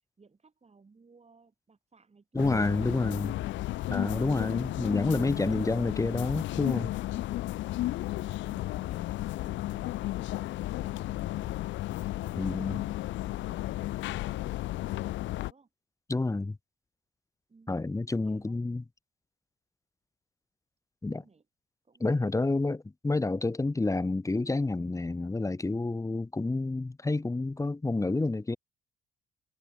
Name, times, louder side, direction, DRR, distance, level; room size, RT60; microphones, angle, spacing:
voice 1, 0.2-3.7 7.7-11.6 11.9-15.7 17.5-17.7 18.3-18.6 21.1-21.4 21.8-22.1 22.4-22.6, right 4 dB, 30° right, 5.4 m, -59 dB
voice 2, 2.3-3.3 3.9-6.9 12.4-12.8 16.1-16.6 17.7-18.8 21.0-21.2 22.0-28.6, left 2 dB, 15° left, 1.0 m, -29 dB
sound 1, 2.4-15.5, left 16 dB, 65° left, 0.6 m, -33 dB
hypercardioid pair, 55°, 21 cm